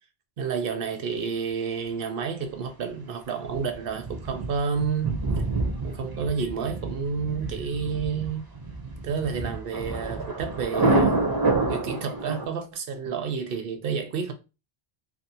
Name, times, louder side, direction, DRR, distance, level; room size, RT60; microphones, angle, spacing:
voice 1, 0.4-5.2 5.8-8.5 9.0-11.2 11.7-14.3, right 6 dB, 65° right, 0.7 m, -30 dB
Thunder, 3.5-12.5, right 2 dB, 35° right, 0.4 m, -28 dB
2.6 x 2.3 x 2.7 m
omnidirectional pair, 1.1 m